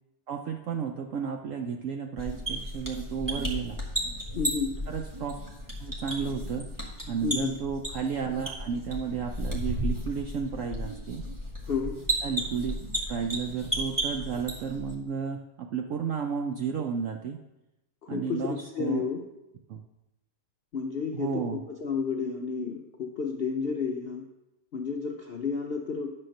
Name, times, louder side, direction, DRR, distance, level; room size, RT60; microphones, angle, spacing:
voice 1, 0.3-3.8 4.9-5.4 5.8-6.7 7.1-11.2 12.2-12.8 13.1-17.4 18.1-19.1 19.7-19.8 21.1-21.6, right 6 dB, 70° right, 3 dB, 0.7 m, -32 dB
sound 1, 2.2-14.9, equal, 10° right, 1.3 m, -34 dB
voice 2, 4.4-4.7 7.2-7.5 11.7-12.0 18.0-19.2 20.7-24.2 24.7-26.1, left 5 dB, 65° left, 1 dB, 0.5 m, -31 dB
9.1 x 4.3 x 6.4 m, 0.95 s
omnidirectional pair, 1.9 m